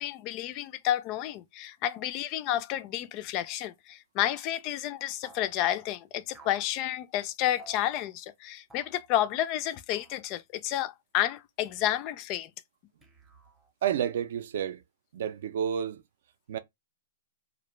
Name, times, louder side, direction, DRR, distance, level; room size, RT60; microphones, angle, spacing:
voice 1, 0.0-12.5, left 12 dB, 40° left, 0.3 m, -31 dB
sound 1, 5.2-5.6 6.3-6.7 7.6-7.9 8.7-9.0 9.9-10.2 11.6-12.2 13.0-13.7, right 4 dB, 5° right, 0.6 m, -55 dB
voice 2, 13.8-14.8 15.1-16.0 16.5-16.6, right 9 dB, 65° right, 0.4 m, -30 dB
2.5 x 2.1 x 3.0 m
hypercardioid pair, 130°, 0 cm